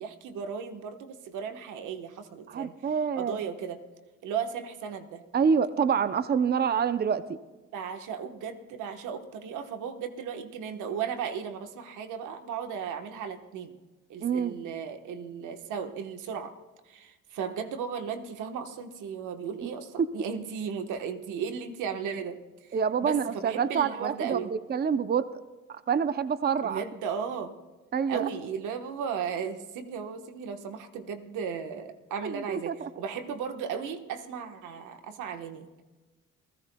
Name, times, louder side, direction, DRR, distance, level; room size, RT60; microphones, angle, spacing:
voice 1, 0.0-2.8 3.1-3.8 4.2-5.2 7.7-13.8 14.1-16.5 16.8-24.5 26.6-27.6 28.1-35.8, right 7 dB, 90° right, 6 dB, 1.3 m, -36 dB
voice 2, 2.5-3.4 5.3-7.2 14.2-14.6 19.6-19.7 22.7-25.3 25.7-26.8 27.9-28.3 32.2-32.9, right 6 dB, 35° right, 12 dB, 0.6 m, -27 dB
28.5 x 16.0 x 2.3 m, 1.2 s
cardioid pair, 90°, 30 cm